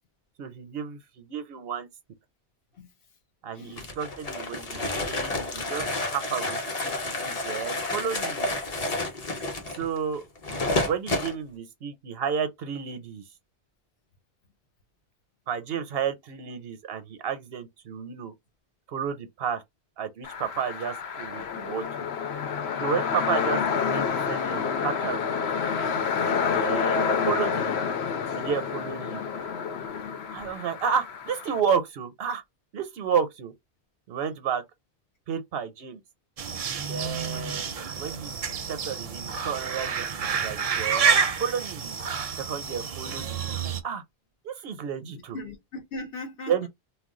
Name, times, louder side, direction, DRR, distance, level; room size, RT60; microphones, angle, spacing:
voice 1, 0.4-1.9 3.4-8.5 9.8-10.2 10.9-13.2 15.5-18.3 18.9-19.6 20.0-21.8 22.8-25.3 25.6-27.8 28.4-29.2 30.3-32.4 32.7-33.5 34.1-34.6 35.3-36.0 36.8-38.4 38.7-42.0 42.4-44.0 44.4-45.4 46.5-46.7, right 7 dB, 70° right, 0.8 m, -32 dB
voice 2, 3.5-3.9 30.4-30.5 45.1-46.7, left 2 dB, 65° left, 1.0 m, -39 dB
sound 1, 3.8-11.3, left 2 dB, 40° left, 0.7 m, -30 dB
sound 2, 20.2-31.6, left 6 dB, 85° left, 0.9 m, -28 dB
sound 3, 36.4-43.8, right 6 dB, 50° right, 0.4 m, -29 dB
2.3 x 2.2 x 3.6 m
omnidirectional pair, 1.1 m